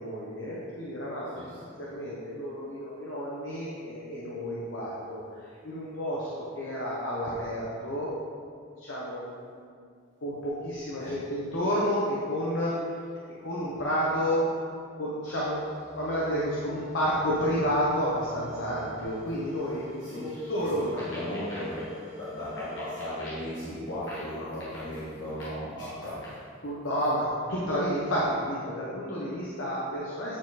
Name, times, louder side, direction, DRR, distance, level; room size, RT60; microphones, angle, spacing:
voice 1, 0.0-8.1 8.8-9.2 9.5-9.7 10.2-13.0 13.4-14.6 15.0-15.6 16.0-19.9 20.1-20.8 21.5-21.6 25.4-26.0 26.6-30.4, equal, 75° left, -7 dB, 1.1 m, -30 dB
voice 2, 1.3-1.7 11.0-11.3 20.0-26.6, left 1 dB, 60° left, -11 dB, 1.7 m, -37 dB
sound 1, 15.2-23.2, left 1 dB, 35° right, 1.4 m, -46 dB
9.1 x 4.4 x 4.2 m, 2.2 s
head